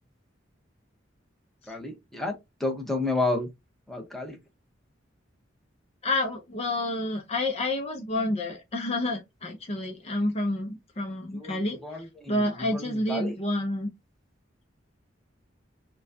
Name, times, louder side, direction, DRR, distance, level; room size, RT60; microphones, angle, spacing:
voice 1, 1.7-3.5 3.9-4.4 11.3-13.4, left 2 dB, ahead, 1.0 m, -31 dB
voice 2, 6.0-11.8 12.3-13.9, left 1 dB, 35° left, 0.7 m, -29 dB
6.0 x 2.3 x 2.7 m
head